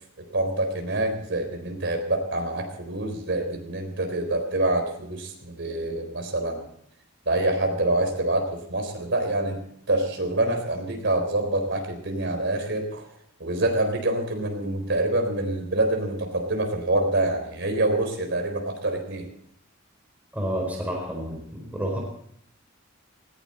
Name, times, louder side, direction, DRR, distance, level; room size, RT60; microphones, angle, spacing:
voice 1, 0.3-6.7 7.3-9.6 9.9-13.1 13.4-19.3, right 2 dB, 65° right, 4 dB, 4.0 m, -26 dB
voice 2, 20.3-22.0, equal, 10° right, -2 dB, 4.5 m, -30 dB
19.5 x 16.0 x 4.4 m, 0.69 s
head